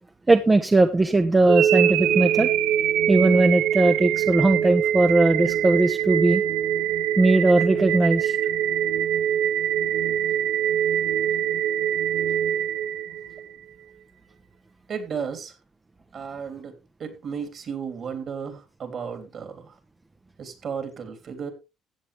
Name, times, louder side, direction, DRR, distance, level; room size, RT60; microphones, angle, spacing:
voice 1, 0.3-2.5 3.1-6.4 7.2-8.4, right 2 dB, 15° right, 7 dB, 0.9 m, -19 dB
sound 1, 1.5-13.5, right 10 dB, 85° right, 0.8 m, -23 dB
voice 2, 14.9-15.5 16.1-19.7 20.4-21.5, right 6 dB, 45° right, 7 dB, 3.3 m, -34 dB
15.0 x 8.2 x 3.4 m, 0.27 s
cardioid pair, 110°, 0 cm